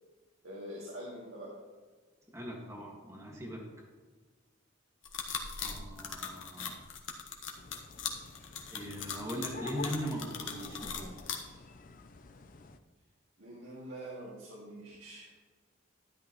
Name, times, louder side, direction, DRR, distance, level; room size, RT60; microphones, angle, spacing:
voice 1, 0.4-1.6 13.4-15.3, right 1 dB, 80° right, -5 dB, 2.3 m, -45 dB
voice 2, 2.3-3.7 5.6-6.8 8.7-11.2, equal, 15° right, -2 dB, 1.8 m, -40 dB
sound 1, 5.0-11.4, left 7 dB, 75° left, 1.4 m, -39 dB
sound 2, 7.5-12.8, left 3 dB, 40° left, 0.6 m, -48 dB
12.5 x 11.0 x 3.1 m, 1.4 s
head